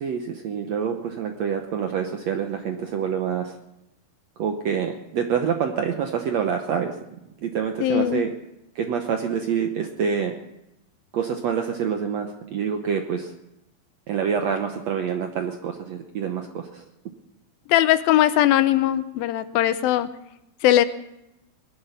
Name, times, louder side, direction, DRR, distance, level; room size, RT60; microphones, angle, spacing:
voice 1, 0.0-3.6 4.4-7.0 7.4-8.3 8.8-10.4 11.1-13.3 14.1-16.8, right 7 dB, 70° right, 5 dB, 1.6 m, -26 dB
voice 2, 7.8-8.2 17.7-20.1 20.6-20.9, left 13 dB, 80° left, 13 dB, 2.4 m, -19 dB
21.0 x 11.5 x 5.7 m, 0.88 s
omnidirectional pair, 4.3 m